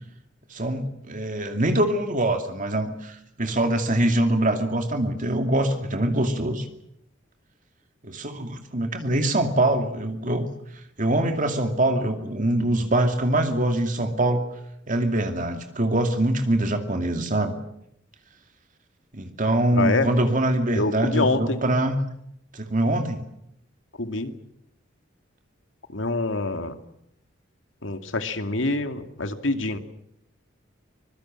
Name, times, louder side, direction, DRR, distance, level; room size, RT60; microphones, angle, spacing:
voice 1, 0.5-6.6 8.0-10.5 11.0-14.4 14.9-17.5 19.1-22.0 22.5-23.2, right 1 dB, 45° right, 5 dB, 2.5 m, -24 dB
voice 2, 19.7-20.1 20.7-21.6 24.0-24.3 25.9-26.7 27.8-29.8, left 2 dB, 85° left, 7 dB, 2.4 m, -25 dB
25.0 x 22.0 x 7.6 m, 0.76 s
head